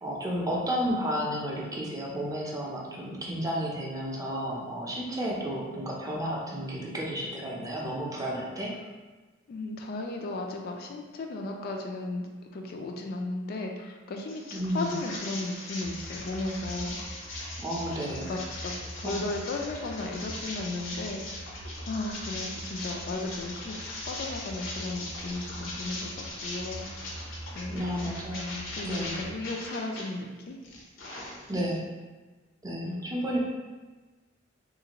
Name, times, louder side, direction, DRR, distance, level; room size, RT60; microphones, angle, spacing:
voice 1, 0.0-8.8 14.5-14.9 17.6-18.3 19.0-19.2 27.7-29.2 31.5-31.8 32.6-33.4, equal, 20° right, -3 dB, 0.5 m, -32 dB
voice 2, 9.5-17.0 18.2-21.5 21.8-27.0 27.5-27.8 28.7-30.6 32.8-33.0, left 2 dB, 50° left, 2 dB, 0.3 m, -35 dB
sound 1, 14.3-30.0 30.5-31.8, left 2 dB, 85° left, 0.7 m, -40 dB
sound 2, 15.8-29.4, right 1 dB, 85° right, 0.4 m, -44 dB
3.1 x 2.5 x 2.9 m, 1.3 s
head